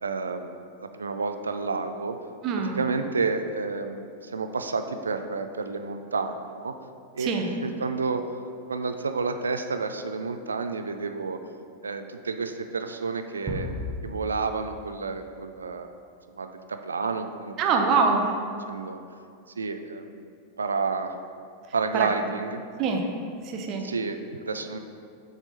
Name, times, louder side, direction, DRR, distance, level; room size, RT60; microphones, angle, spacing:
voice 1, 0.0-2.2 2.8-6.7 7.1-7.3 7.6-8.4 8.7-11.4 11.8-13.7 14.0-15.9 16.3-17.5 18.0-18.2 18.7-19.0 19.6-20.3 20.6-21.2 21.7-22.6 23.8-24.8, right 4 dB, 75° right, 7 dB, 0.4 m, -30 dB
voice 2, 2.4-2.8 7.2-7.5 17.6-18.4 21.9-22.1 22.8-23.1 23.4-23.8, right 4 dB, 35° right, 3 dB, 0.7 m, -24 dB
sound 1, 13.5-15.4, left 1 dB, 15° right, 0.9 m, -36 dB
7.2 x 3.5 x 4.1 m, 2.4 s
figure-of-eight pair, 90°, 0 cm